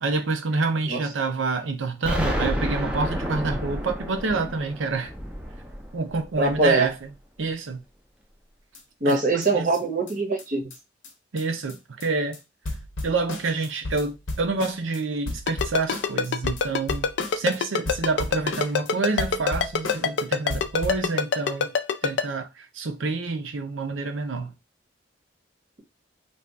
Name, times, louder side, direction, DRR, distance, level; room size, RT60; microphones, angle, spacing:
voice 1, 0.0-5.1 5.9-6.9 7.4-7.8 9.1-9.7 11.3-12.4 13.0-21.7 22.0-24.5, right 4 dB, 85° right, 0.6 m, -27 dB
Explosion, 2.0-6.9, equal, 5° right, 0.4 m, -30 dB
voice 2, 6.4-6.9 9.0-10.6, right 2 dB, 40° right, 0.7 m, -23 dB
sound 1, 8.7-8.8 9.1-9.2 9.4-9.5 9.7-9.8 10.1-10.2 10.4-10.5 10.7-10.8 11.0-11.1 11.4-11.5 11.7-12.1 12.3-12.4 12.6-15.0 15.3-17.6 17.9-18.9 19.2-20.2 20.5-21.1, left 1 dB, 90° left, 0.8 m, -34 dB
Ringtone, 15.5-22.2, left 6 dB, 65° left, 0.3 m, -23 dB
2.7 x 2.3 x 3.4 m
head